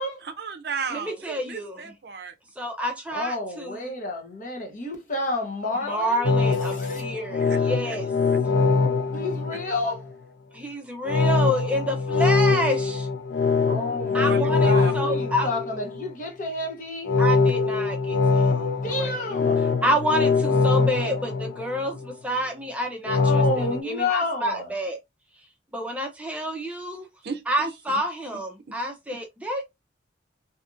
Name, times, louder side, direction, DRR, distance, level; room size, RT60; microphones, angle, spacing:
voice 1, 0.2-2.3 6.7-7.1 7.4-7.6 7.8-8.0 14.0-14.9 27.2-27.4 27.9-28.0, right 5 dB, 60° right, 0.5 m, -35 dB
voice 2, 0.9-1.8 2.6-3.9 5.7-8.1 10.5-13.1 14.1-15.5 17.2-18.7 19.0-19.3 19.8-25.0 25.7-27.1 27.5-29.6, equal, 5° right, 0.5 m, -29 dB
voice 3, 3.1-6.2 6.6-7.0 9.1-10.1 13.7-17.1 18.8-19.6 23.2-24.7, left 2 dB, 45° left, 0.8 m, -30 dB
sound 1, 6.2-10.1 11.0-16.1 17.0-22.1 23.1-23.8, left 4 dB, 80° left, 0.4 m, -23 dB
2.7 x 2.5 x 2.4 m
head